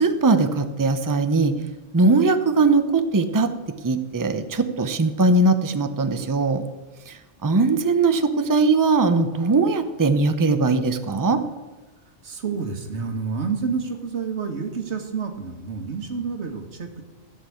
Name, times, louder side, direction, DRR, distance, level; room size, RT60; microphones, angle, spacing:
voice 1, 0.0-1.5 1.9-3.5 3.8-6.6 7.1-7.2 7.4-11.4, right 3 dB, 20° right, 9 dB, 0.6 m, -20 dB
voice 2, 12.2-17.0, right 5 dB, 65° right, 5 dB, 1.7 m, -29 dB
14.5 x 5.6 x 8.5 m, 1.2 s
omnidirectional pair, 1.3 m